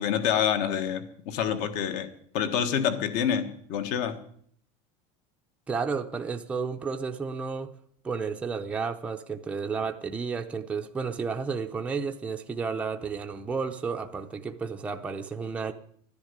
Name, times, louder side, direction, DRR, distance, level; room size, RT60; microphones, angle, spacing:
voice 1, 0.0-2.1 2.3-4.2, left 8 dB, 50° left, 1.5 m, -27 dB
voice 2, 5.7-7.7 8.0-15.7, right 5 dB, 10° right, 0.6 m, -32 dB
13.0 x 10.5 x 9.6 m
cardioid pair, 175°, 16 cm